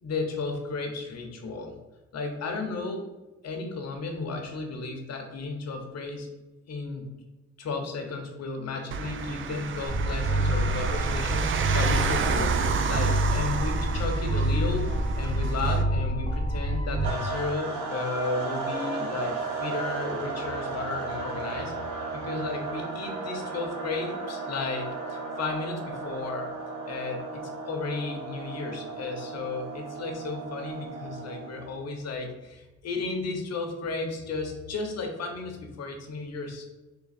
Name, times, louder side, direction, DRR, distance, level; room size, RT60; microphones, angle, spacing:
voice 1, 0.0-1.7 2.1-3.1 3.4-6.3 6.7-7.1 7.6-12.6 12.9-21.8 22.1-26.5 26.9-36.7, left 3 dB, 55° left, 4 dB, 0.9 m, -34 dB
sound 1, 8.9-15.8, right 6 dB, 45° right, 0.4 m, -31 dB
sound 2, 9.9-17.1, right 1 dB, 20° left, 0.9 m, -27 dB
sound 3, 17.0-31.8, right 3 dB, 75° right, 0.9 m, -35 dB
3.7 x 2.6 x 4.1 m, 1.1 s
cardioid pair, 90°, 30 cm